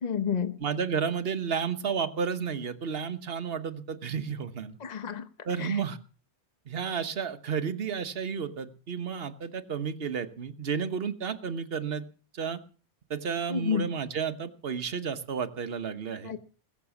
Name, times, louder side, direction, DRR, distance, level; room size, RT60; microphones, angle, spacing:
voice 1, 0.0-0.5 4.8-5.3 5.6-5.7 13.5-13.9 16.2-16.4, left 7 dB, 40° left, 10 dB, 1.1 m, -30 dB
voice 2, 0.6-4.8 5.4-6.0 6.7-12.1 12.3-12.6 13.1-16.3, right 6 dB, 60° right, 9 dB, 1.4 m, -32 dB
20.5 x 7.3 x 7.1 m, 0.40 s
omnidirectional pair, 1.2 m